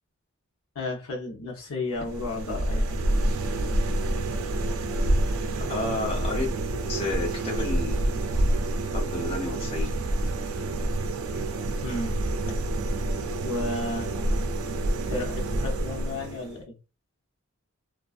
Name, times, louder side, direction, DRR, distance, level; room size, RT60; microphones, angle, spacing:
voice 1, 0.7-3.0 11.8-12.2 13.4-14.1 15.1-16.8, left 2 dB, 70° left, 0 dB, 0.7 m, -33 dB
sound 1, 1.9-16.6, right 1 dB, 70° right, 0.4 m, -28 dB
voice 2, 5.6-6.5 6.9-8.3 8.8-9.9, left 2 dB, 25° left, -2 dB, 0.6 m, -31 dB
2.4 x 2.3 x 2.3 m, 0.30 s
head